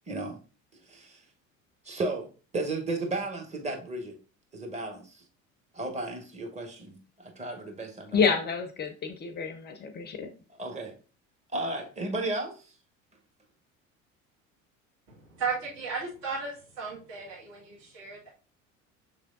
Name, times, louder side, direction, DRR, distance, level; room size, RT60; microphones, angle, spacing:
voice 1, 0.1-0.4 0.9-1.2 1.8-2.3 2.5-4.2 4.5-5.2 5.7-8.4 10.5-10.9 11.5-12.7, right 2 dB, 15° right, 2 dB, 1.1 m, -34 dB
voice 2, 8.1-10.3, left 6 dB, 25° left, 8 dB, 0.5 m, -28 dB
voice 3, 15.1-18.3, right 4 dB, 55° right, -5 dB, 1.7 m, -35 dB
6.2 x 3.3 x 2.5 m, 0.36 s
figure-of-eight pair, 65°, 41 cm